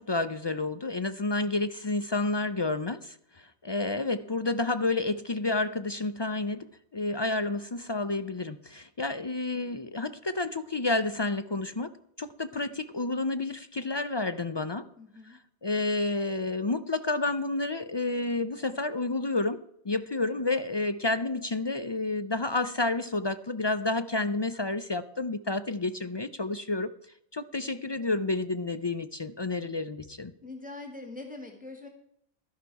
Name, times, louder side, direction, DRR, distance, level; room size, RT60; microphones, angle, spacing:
voice 1, 0.0-3.1 3.6-11.9 12.2-14.9 15.6-26.9 27.3-30.3, left 2 dB, 40° left, 11 dB, 0.4 m, -30 dB
voice 2, 15.0-15.4 30.4-31.9, left 2 dB, 5° right, 2 dB, 1.7 m, -43 dB
12.5 x 11.0 x 4.7 m, 0.72 s
omnidirectional pair, 1.1 m